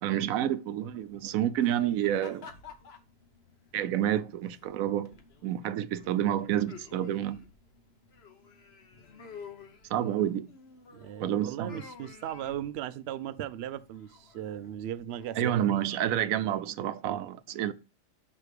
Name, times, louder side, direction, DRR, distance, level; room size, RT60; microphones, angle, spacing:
voice 1, 0.0-2.5 3.7-5.1 5.4-7.4 9.9-10.5 11.2-11.7 15.4-17.7, right 11 dB, 85° right, 1.0 m, -29 dB
sound 1, 0.9-16.5, left 5 dB, 50° left, 1.3 m, -53 dB
voice 2, 10.9-15.8 17.0-17.3, right 11 dB, 65° right, 0.7 m, -37 dB
6.0 x 4.8 x 4.9 m
omnidirectional pair, 1.4 m